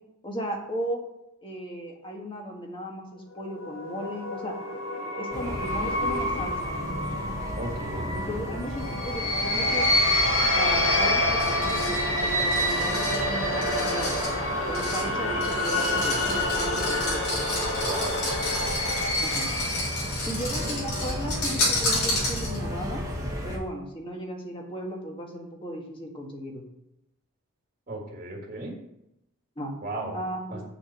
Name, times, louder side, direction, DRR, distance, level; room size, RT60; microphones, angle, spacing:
voice 1, 0.2-1.0 1.4-4.6 5.2-6.7 8.1-9.9 10.5-14.2 14.7-17.3 19.2-19.5 20.2-23.0 23.4-26.6 29.6-29.7 30.1-30.6, equal, 25° left, 1 dB, 1.6 m, -36 dB
sound 1, 3.4-20.2, left 1 dB, 55° left, 1.7 m, -27 dB
sound 2, 5.3-23.6, equal, 15° right, 1.4 m, -35 dB
voice 2, 7.6-8.1 8.8-8.9 17.8-18.2 20.6-20.8 27.9-28.7 29.8-30.2 30.5-30.6, right 2 dB, 35° right, -2 dB, 1.7 m, -35 dB
sound 3, 11.4-22.8, left 2 dB, 85° left, 4.0 m, -32 dB
6.8 x 5.9 x 7.2 m, 0.85 s
head